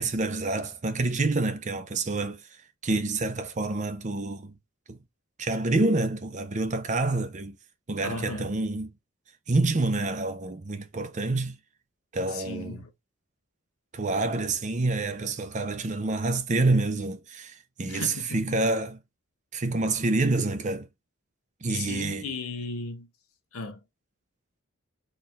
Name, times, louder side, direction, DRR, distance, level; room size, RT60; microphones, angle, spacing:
voice 1, 0.0-2.4 2.8-4.5 4.9-5.0 5.4-7.6 7.9-8.9 9.5-11.6 12.1-12.8 13.9-19.0 19.5-20.9 21.6-22.3, right 2 dB, 35° right, 0.6 m, -27 dB
voice 2, 8.0-8.5 12.3-12.9 17.9-18.5 21.7-23.1 23.5-23.8, left 3 dB, 85° left, 1.1 m, -36 dB
4.3 x 2.5 x 3.3 m
head